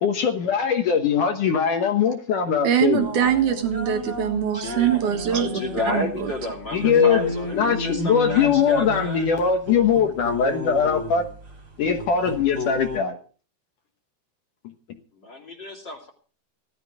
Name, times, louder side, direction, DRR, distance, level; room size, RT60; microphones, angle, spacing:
voice 1, 0.0-3.1 6.7-11.3 11.8-13.2, left 6 dB, 65° left, 6 dB, 2.2 m, -21 dB
voice 2, 2.6-5.6 5.9-6.3, right 9 dB, 55° right, 6 dB, 2.6 m, -22 dB
sound 1, 3.0-13.0, left 1 dB, 20° right, 3.4 m, -33 dB
voice 3, 4.5-5.0 5.3-9.3 15.2-16.1, left 2 dB, 30° left, 4 dB, 2.6 m, -31 dB
17.0 x 12.5 x 4.9 m, 0.40 s
omnidirectional pair, 5.0 m